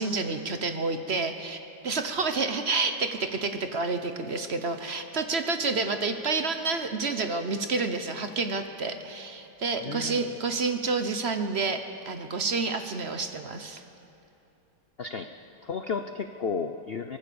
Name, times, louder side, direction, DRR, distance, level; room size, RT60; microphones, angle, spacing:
voice 1, 0.0-13.8, right 4 dB, 40° right, 7 dB, 1.1 m, -29 dB
voice 2, 9.8-10.2 15.0-15.3 15.6-17.2, left 5 dB, 80° left, 8 dB, 0.5 m, -33 dB
24.5 x 19.0 x 7.0 m, 2.8 s
omnidirectional pair, 2.1 m